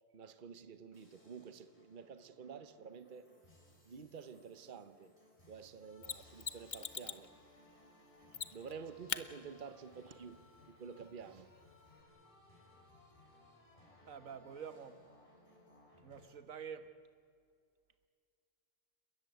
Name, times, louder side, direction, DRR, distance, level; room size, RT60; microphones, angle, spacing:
voice 1, 0.1-3.3 3.8-5.1 5.5-7.3 8.5-10.4 10.7-11.5, right 6 dB, 40° right, 1.1 m, -50 dB
sound 1, 0.9-16.3, left 2 dB, 25° left, 4.4 m, -64 dB
Mechanisms, 6.0-7.3 8.3-8.7 9.1-9.2 12.0-12.1, left 7 dB, 45° left, 0.8 m, -41 dB
voice 2, 14.1-15.0 16.0-16.9, right 7 dB, 85° right, 1.7 m, -47 dB
30.0 x 13.5 x 9.3 m
omnidirectional pair, 1.3 m